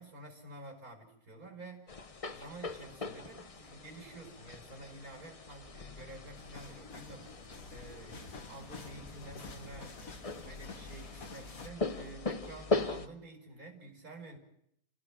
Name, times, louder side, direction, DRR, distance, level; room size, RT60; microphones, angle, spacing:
voice 1, 0.0-10.0 10.4-14.4, right 2 dB, 65° right, 5.6 m, -50 dB
sound 1, 1.9-13.1, left 3 dB, 30° left, 0.8 m, -40 dB
sound 2, 6.4-11.7, left 3 dB, 65° left, 2.2 m, -49 dB
29.5 x 16.0 x 6.1 m
omnidirectional pair, 1.6 m